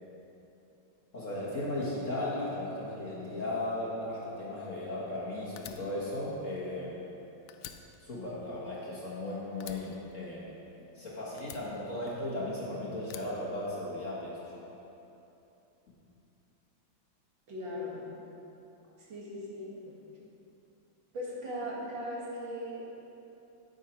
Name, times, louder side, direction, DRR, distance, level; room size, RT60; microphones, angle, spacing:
voice 1, 1.1-7.0 8.0-10.5 10.9-14.8, left 1 dB, 40° left, -7 dB, 1.6 m, -36 dB
Fire, 5.6-7.2 7.5-9.2 9.6-10.9 11.4-12.5 13.0-14.2, left 9 dB, 75° left, 0.9 m, -49 dB
voice 2, 17.5-18.0 19.1-19.9 21.1-22.8, equal, 65° right, -6 dB, 2.5 m, -38 dB
9.2 x 8.1 x 4.4 m, 3.0 s
omnidirectional pair, 2.2 m